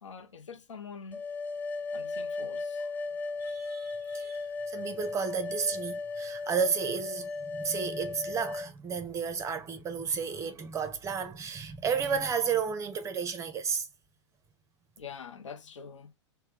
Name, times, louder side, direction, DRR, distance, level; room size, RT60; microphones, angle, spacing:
voice 1, 0.0-1.2 1.9-3.0 15.0-16.1, left 6 dB, 75° left, 0.7 m, -45 dB
sound 1, 1.1-8.7, left 3 dB, 10° left, 0.4 m, -36 dB
voice 2, 3.4-13.9, right 6 dB, 20° right, 0.7 m, -32 dB
3.4 x 2.2 x 2.9 m
hypercardioid pair, 105°, 16 cm